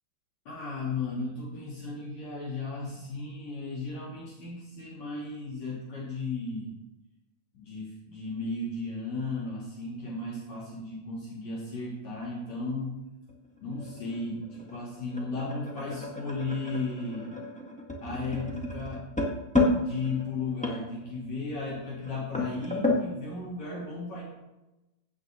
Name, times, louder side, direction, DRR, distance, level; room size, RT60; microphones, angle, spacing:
voice 1, 0.5-6.8 7.5-12.9 13.6-17.4 18.0-19.1 19.6-24.2, left 3 dB, 65° left, -5 dB, 3.8 m, -35 dB
sound 1, 13.3-23.1, left 2 dB, 5° left, 0.5 m, -32 dB
15.5 x 8.0 x 3.8 m, 0.99 s
omnidirectional pair, 3.5 m